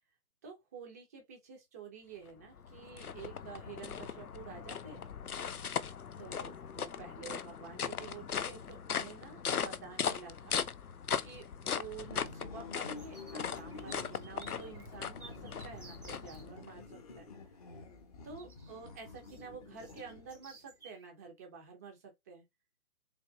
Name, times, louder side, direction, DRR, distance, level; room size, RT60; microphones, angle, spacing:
voice 1, 0.4-5.0 6.2-10.6 11.2-17.3 18.2-22.4, right 6 dB, 10° right, 0.7 m, -50 dB
sound 1, 2.3-16.7, left 7 dB, 75° left, 0.7 m, -39 dB
sound 2, 2.7-2.9 3.2-3.8 5.8-5.9 6.5-6.6 6.8-7.2 7.5-8.1 8.6-8.7 9.8-10.2 10.5-16.5 18.4-21.1, right 4 dB, 75° right, 1.8 m, -58 dB
sound 3, 12.0-20.6, left 4 dB, 25° left, 0.9 m, -49 dB
4.0 x 3.1 x 4.3 m
figure-of-eight pair, 135°, 44 cm